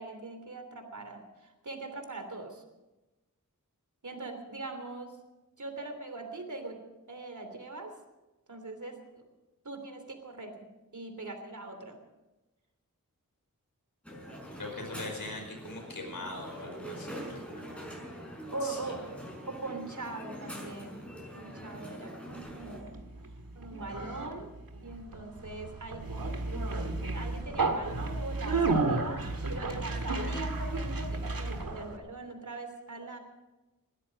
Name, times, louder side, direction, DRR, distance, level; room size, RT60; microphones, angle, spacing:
voice 1, 0.0-2.6 4.0-5.1 5.6-6.8 7.1-7.9 8.5-9.2 9.6-10.7 10.9-12.0 17.1-17.3 18.5-21.0 21.3-23.0 23.5-24.5 24.8-29.2 29.5-33.2, right 3 dB, 60° right, 6 dB, 3.1 m, -41 dB
Crowd, 14.0-22.8, equal, 5° left, 5.9 m, -44 dB
voice 2, 14.6-17.8 18.6-19.0, left 2 dB, 80° left, 2 dB, 5.1 m, -42 dB
Conversation, 22.5-32.0, right 3 dB, 85° right, 1.9 m, -33 dB
21.0 x 13.5 x 5.2 m, 1.1 s
wide cardioid pair, 75°, 34 cm